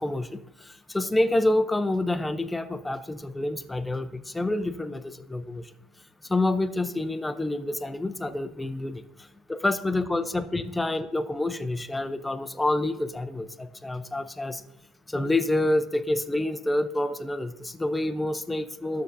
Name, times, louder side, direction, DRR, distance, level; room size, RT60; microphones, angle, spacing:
voice 1, 0.0-5.7 6.2-9.0 9.5-14.6 15.1-19.0, left 2 dB, 10° left, 8 dB, 0.5 m, -28 dB
12.5 x 6.3 x 2.7 m, 0.90 s
supercardioid pair, 90°, 0 cm